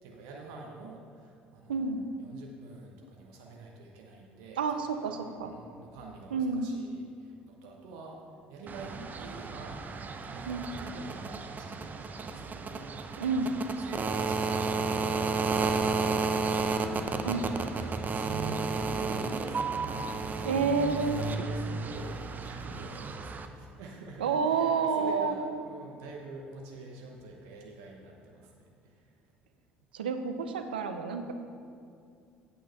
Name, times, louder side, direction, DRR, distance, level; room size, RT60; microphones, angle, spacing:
voice 1, 0.0-1.9 2.2-4.6 5.0-8.2 8.5-9.7 10.3-13.1 13.5-29.1, right 3 dB, 75° right, 0 dB, 1.0 m, -47 dB
voice 2, 1.7-2.0 4.6-5.5 6.3-6.7 10.5-10.7 13.2-13.5 17.2-17.4 20.4-21.2 24.2-25.4 29.9-31.3, right 5 dB, 90° right, 7 dB, 0.6 m, -29 dB
sound 1, 8.7-23.5, right 4 dB, 35° right, 0.7 m, -32 dB
8.6 x 4.5 x 6.9 m, 2.4 s
hypercardioid pair, 65°, 5 cm